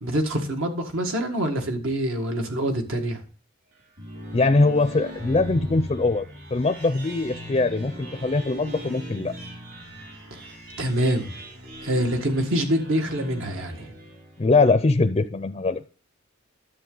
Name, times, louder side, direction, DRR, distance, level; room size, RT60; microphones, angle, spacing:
voice 1, 0.0-3.2 10.3-10.5 10.8-11.3 11.8-13.9, right 1 dB, 75° right, 4 dB, 1.8 m, -25 dB
sound 1, 3.7-14.6, equal, 55° right, 4.9 m, -39 dB
voice 2, 4.3-6.2 6.5-9.3 14.4-15.8, left 3 dB, 30° left, 9 dB, 0.4 m, -22 dB
11.0 x 7.2 x 3.9 m, 0.39 s
head